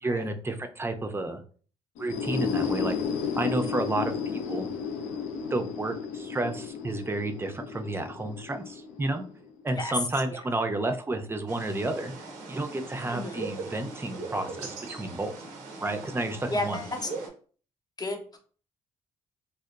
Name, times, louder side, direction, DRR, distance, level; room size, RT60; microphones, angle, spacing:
voice 1, 0.0-1.4 2.0-3.0 3.4-4.1 4.5-4.7 5.5-9.2 9.6-12.1 12.5-15.3 15.8-16.9, right 2 dB, 20° right, 6 dB, 0.4 m, -31 dB
sound 1, 2.0-9.6, left 6 dB, 80° left, 0.4 m, -33 dB
sound 2, 11.5-17.3, right 3 dB, 90° right, 0.5 m, -40 dB
voice 2, 13.1-13.5 16.5-17.1 18.0-18.4, left 2 dB, 30° left, 4 dB, 0.7 m, -33 dB
2.8 x 2.0 x 2.3 m, 0.42 s
hypercardioid pair, 55°, 13 cm